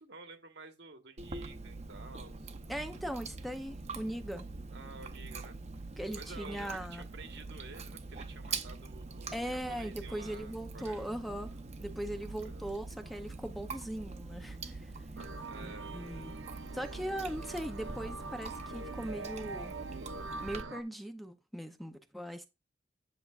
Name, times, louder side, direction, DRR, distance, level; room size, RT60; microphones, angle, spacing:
voice 1, 0.0-2.5 4.7-5.9 6.1-11.2 12.4-12.7 15.4-15.9, right 3 dB, 70° right, 1.3 m, -51 dB
Chewing mastication, 1.2-20.6, right 3 dB, 40° right, 0.7 m, -44 dB
voice 2, 2.7-4.5 6.0-7.0 9.3-11.5 11.8-15.1 15.6-16.3 16.7-19.8 20.4-22.5, right 1 dB, ahead, 0.5 m, -39 dB
sound 1, 15.2-20.8, right 3 dB, 85° right, 0.8 m, -44 dB
10.5 x 6.5 x 2.4 m
head